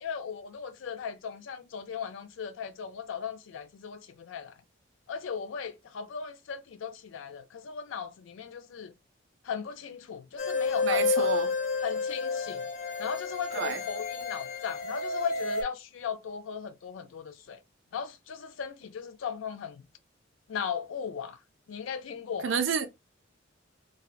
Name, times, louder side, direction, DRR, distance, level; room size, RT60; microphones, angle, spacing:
voice 1, 0.0-4.5 5.1-8.9 9.4-11.4 11.8-12.6 13.0-17.6 17.9-19.9 20.5-21.4 21.7-22.6, left 7 dB, 80° left, 0.4 m, -37 dB
sound 1, 10.4-15.6, left 4 dB, 45° left, 0.6 m, -30 dB
voice 2, 10.8-11.5 13.5-13.8 22.4-22.9, right 6 dB, 65° right, 0.5 m, -29 dB
2.7 x 2.0 x 2.2 m
head